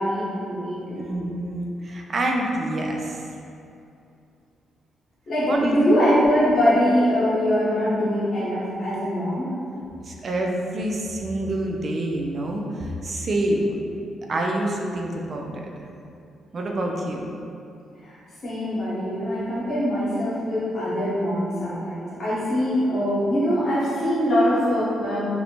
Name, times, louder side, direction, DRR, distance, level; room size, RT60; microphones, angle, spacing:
voice 1, 0.0-1.2 5.3-9.5 18.0-18.2 18.4-25.3, equal, 55° left, -9 dB, 1.0 m, -23 dB
voice 2, 1.0-3.2 5.5-5.8 10.0-13.8 14.3-15.5 16.5-17.3 19.4-19.5, right 1 dB, 45° right, 0 dB, 0.3 m, -27 dB
2.6 x 2.0 x 2.9 m, 2.6 s
cardioid pair, 100°, 0 cm